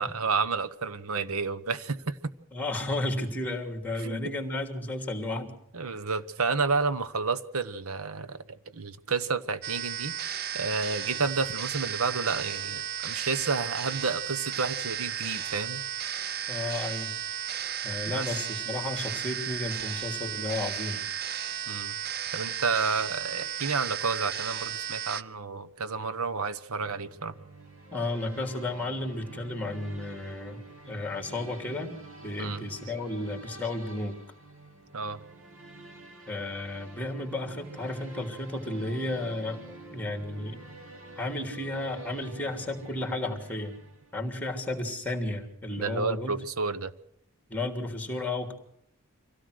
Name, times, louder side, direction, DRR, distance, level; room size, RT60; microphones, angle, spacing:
voice 1, 0.0-2.3 4.0-4.2 5.7-8.4 8.7-10.1 10.5-15.8 18.1-18.3 21.7-22.0 22.3-27.4 32.4-32.9 34.9-35.2 45.8-46.9, right 4 dB, 75° right, 1.1 m, -30 dB
voice 2, 2.5-5.5 16.5-17.5 17.8-21.0 27.9-31.9 32.2-34.2 36.3-39.6 39.9-40.6 41.2-43.8 44.1-46.4 47.5-48.5, left 2 dB, 5° left, 3.0 m, -33 dB
sound 1, 9.6-25.2, right 10 dB, 45° right, 0.7 m, -34 dB
sound 2, 26.7-44.4, right 2 dB, 60° right, 2.6 m, -47 dB
25.0 x 17.0 x 6.5 m
head